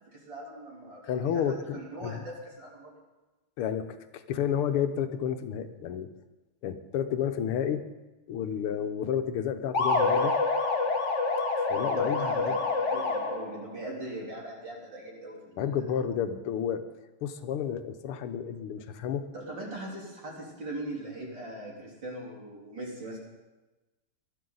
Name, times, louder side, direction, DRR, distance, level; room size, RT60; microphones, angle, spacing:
voice 1, 0.1-2.9 12.1-15.6 19.3-23.2, right 1 dB, 55° right, -3 dB, 4.4 m, -40 dB
voice 2, 1.0-2.2 3.6-3.9 4.1-6.1 6.6-7.9 8.3-10.4 11.7-12.6 15.6-16.8 17.2-19.2, left 8 dB, 90° left, 8 dB, 1.8 m, -31 dB
sound 1, 9.7-13.6, left 3 dB, 35° left, 1.5 m, -27 dB
20.5 x 12.0 x 4.0 m, 1.1 s
omnidirectional pair, 2.4 m